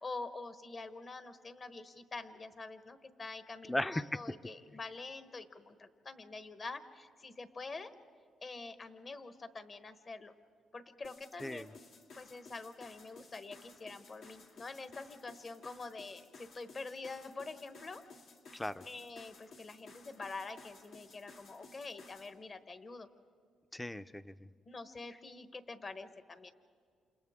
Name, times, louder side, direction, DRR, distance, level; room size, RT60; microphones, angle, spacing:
voice 1, 0.0-7.9 8.4-10.3 10.7-11.7 12.2-18.0 18.8-23.1 24.7-26.5, left 3 dB, 40° left, 10 dB, 1.2 m, -46 dB
voice 2, 3.7-4.1 11.4-11.7 18.5-18.8 23.7-24.5, left 1 dB, 10° left, 14 dB, 0.5 m, -37 dB
sound 1, 11.0-22.3, left 3 dB, 80° left, 2.2 m, -57 dB
28.5 x 28.0 x 3.6 m, 2.1 s
cardioid pair, 90°, 0 cm